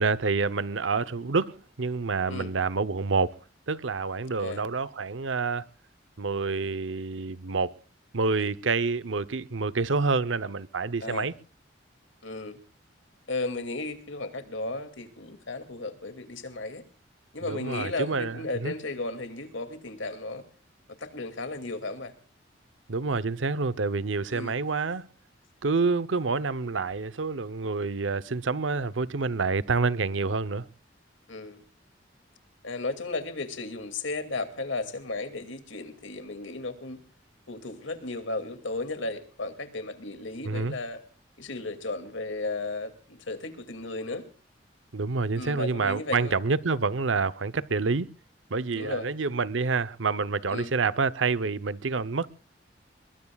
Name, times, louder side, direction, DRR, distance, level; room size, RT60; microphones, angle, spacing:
voice 1, 0.0-3.4 3.7-5.7 6.2-7.7 8.1-11.3 17.4-18.7 22.9-25.1 25.6-30.6 40.4-40.7 44.9-48.1 48.5-52.3, right 4 dB, 85° right, 0.8 m, -28 dB
voice 2, 4.4-4.7 11.0-11.3 12.2-12.6 13.3-16.8 17.3-20.4 21.0-22.1 24.3-24.5 31.3-31.6 32.6-37.0 37.5-41.0 41.4-44.2 45.4-46.3 48.7-49.1 50.5-50.7, left 2 dB, 90° left, 2.5 m, -34 dB
22.0 x 22.0 x 2.4 m
head